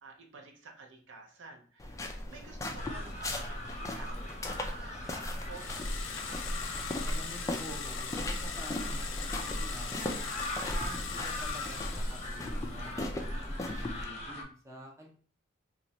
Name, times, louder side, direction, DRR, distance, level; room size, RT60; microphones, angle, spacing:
voice 1, 0.0-5.1 5.4-6.4, right 3 dB, 65° right, 1 dB, 0.7 m, -51 dB
sound 1, 1.8-14.0, left 1 dB, 15° left, 0.4 m, -37 dB
sound 2, 2.8-14.4, left 2 dB, 35° left, 0.8 m, -43 dB
sound 3, 5.5-12.8, left 6 dB, 70° left, 0.5 m, -41 dB
voice 2, 7.0-10.3 10.7-15.1, right 1 dB, 15° right, -1 dB, 0.7 m, -48 dB
3.0 x 2.4 x 4.1 m, 0.43 s
head